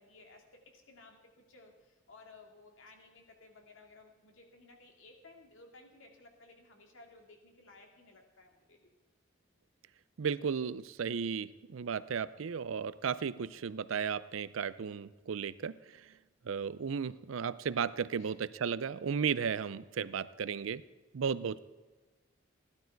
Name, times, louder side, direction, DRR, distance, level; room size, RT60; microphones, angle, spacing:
voice 1, 0.0-8.9 18.2-18.3, left 3 dB, 80° left, 2 dB, 2.2 m, -57 dB
voice 2, 10.2-15.8 16.4-20.8 21.1-21.6, right 6 dB, 90° right, 17 dB, 0.5 m, -34 dB
15.5 x 12.0 x 4.6 m, 1.2 s
head